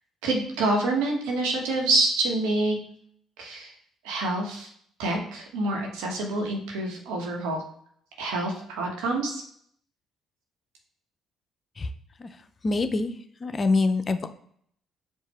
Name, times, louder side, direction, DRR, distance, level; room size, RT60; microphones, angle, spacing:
voice 1, 0.2-2.8 3.4-3.7 4.0-4.7 5.0-7.6 8.2-9.4, right 2 dB, 85° right, 0 dB, 1.3 m, -27 dB
voice 2, 12.6-13.1 13.4-14.3, left 3 dB, 40° left, 9 dB, 0.6 m, -24 dB
4.7 x 2.5 x 4.3 m, 0.65 s
supercardioid pair, 60°, 0 cm